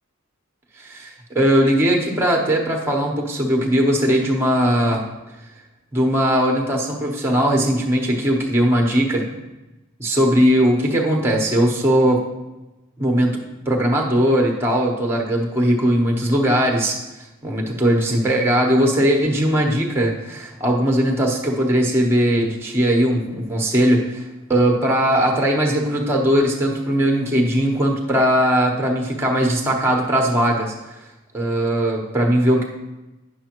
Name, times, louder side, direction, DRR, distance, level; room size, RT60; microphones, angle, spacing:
voice 1, 0.8-5.0 5.9-9.3 10.0-12.2 13.0-17.0 17.4-31.0 31.3-32.6, equal, 10° right, 0 dB, 1.0 m, -19 dB
9.3 x 6.9 x 3.0 m, 1.0 s
head